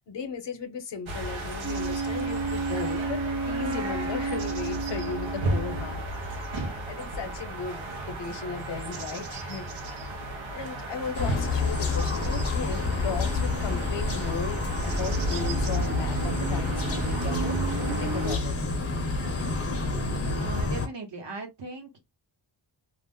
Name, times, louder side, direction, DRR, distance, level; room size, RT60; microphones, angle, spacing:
voice 1, 0.1-9.9 10.5-18.6, left 5 dB, 65° left, 0.8 m, -36 dB
sound 1, 1.1-18.4, right 2 dB, 85° right, 0.8 m, -34 dB
Wind instrument woodwind instrument, 1.6-6.0, right 4 dB, 35° right, 0.4 m, -32 dB
sound 2, 11.1-20.9, left 3 dB, 30° left, 0.6 m, -28 dB
voice 2, 20.4-22.0, right 4 dB, 65° right, 1.1 m, -38 dB
2.5 x 2.0 x 3.6 m
wide cardioid pair, 140°, 46 cm